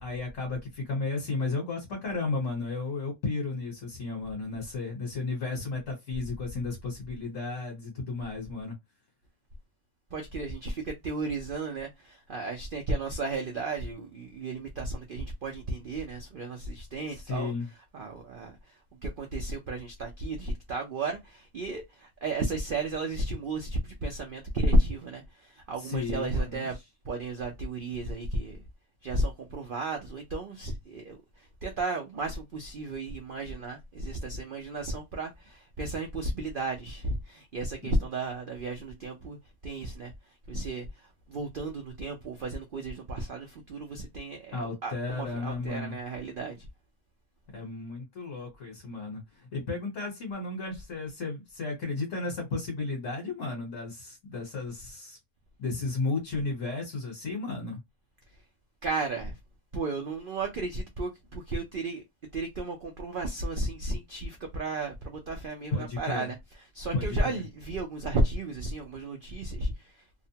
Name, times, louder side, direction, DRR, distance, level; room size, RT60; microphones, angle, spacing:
voice 1, 0.0-8.7 17.3-17.7 25.8-26.7 37.8-37.9 44.5-45.9 47.5-49.2 49.5-55.2 55.6-57.8 65.7-66.3 66.9-67.4, left 3 dB, 55° left, 1.3 m, -33 dB
voice 2, 10.1-17.5 17.9-18.7 19.0-26.7 27.0-28.6 29.0-39.4 39.6-40.1 40.5-46.7 58.8-59.4 59.7-62.0 62.3-66.4 66.7-69.9, right 2 dB, 90° right, 0.4 m, -33 dB
2.8 x 2.1 x 2.7 m
omnidirectional pair, 1.7 m